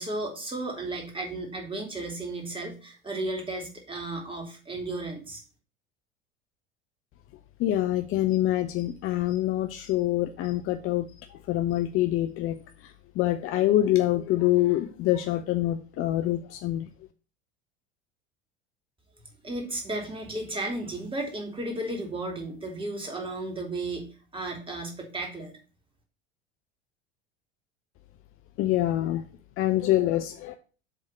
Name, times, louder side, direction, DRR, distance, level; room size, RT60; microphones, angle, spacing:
voice 1, 0.0-5.4 19.4-25.6, right 2 dB, 15° right, 1 dB, 2.7 m, -34 dB
voice 2, 7.6-12.6 12.8-16.9 28.6-29.2 29.6-30.5, left 14 dB, 40° left, 8 dB, 0.7 m, -25 dB
7.6 x 3.7 x 6.5 m, 0.36 s
hypercardioid pair, 75°, 32 cm